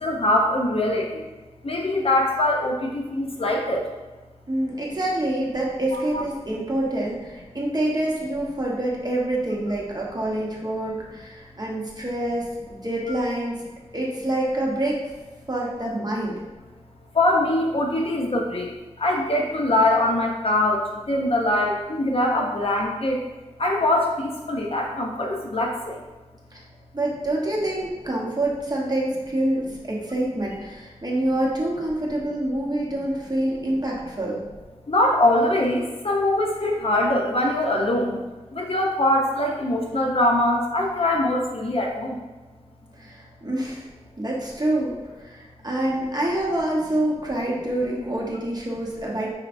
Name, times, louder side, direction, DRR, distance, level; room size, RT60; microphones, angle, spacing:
voice 1, 0.0-1.1 1.6-3.8 6.1-6.2 17.2-18.7 19.0-23.2 23.6-26.0 34.9-38.2 38.6-42.1, left 1 dB, 50° left, 0 dB, 0.7 m, -22 dB
voice 2, 4.5-13.6 13.9-15.0 15.5-16.4 26.5-26.6 26.9-34.4 43.0-43.9 44.2-49.3, right 1 dB, 35° right, -3 dB, 1.0 m, -26 dB
5.8 x 3.0 x 2.6 m, 1.2 s
wide cardioid pair, 65°, 12 cm